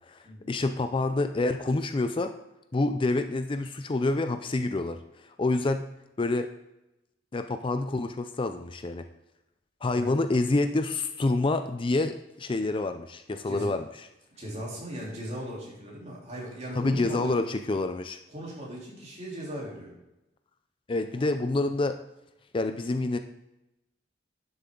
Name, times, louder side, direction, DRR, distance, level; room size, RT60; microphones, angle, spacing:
voice 1, 0.0-2.3 2.7-5.0 5.4-5.9 6.2-6.5 7.3-9.0 9.8-13.8 16.8-18.2 20.9-22.0 22.5-23.2, left 2 dB, 30° left, 8 dB, 0.4 m, -27 dB
voice 2, 14.4-17.4 18.3-19.9 21.1-21.6, equal, 40° right, -4 dB, 3.4 m, -38 dB
11.5 x 7.0 x 3.8 m, 0.92 s
head